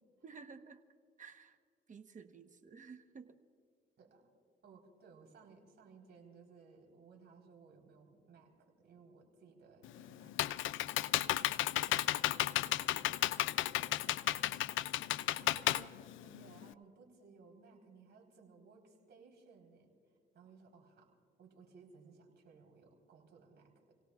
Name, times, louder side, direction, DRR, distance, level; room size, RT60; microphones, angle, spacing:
voice 1, 0.2-0.8 1.2-1.6 1.9-3.4, right 5 dB, 40° right, 8 dB, 1.1 m, -53 dB
voice 2, 4.6-11.1 11.4-12.0 12.3-13.5 13.8-14.9 15.4-19.9 20.3-23.9, right 5 dB, 60° right, 0 dB, 4.1 m, -61 dB
Computer keyboard, 9.8-16.7, left 15 dB, 80° left, 0.4 m, -33 dB
30.0 x 17.5 x 2.4 m, 2.2 s
cardioid pair, 90°, 20 cm